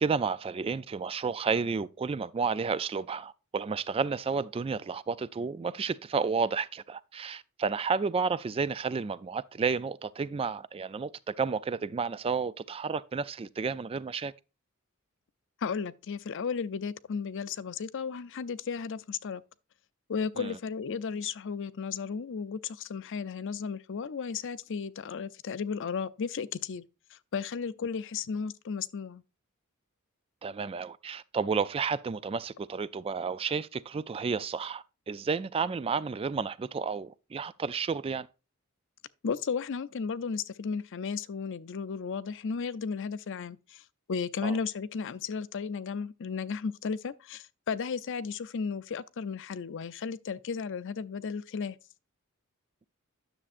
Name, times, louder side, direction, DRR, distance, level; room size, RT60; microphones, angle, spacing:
voice 1, 0.0-14.3 20.4-20.6 30.4-38.3 44.4-44.6, right 5 dB, 25° right, 0.3 m, -31 dB
voice 2, 15.6-19.4 20.1-26.8 27.1-29.2 39.2-43.8 44.1-51.8, left 5 dB, 60° left, 0.5 m, -34 dB
9.9 x 7.1 x 2.5 m
head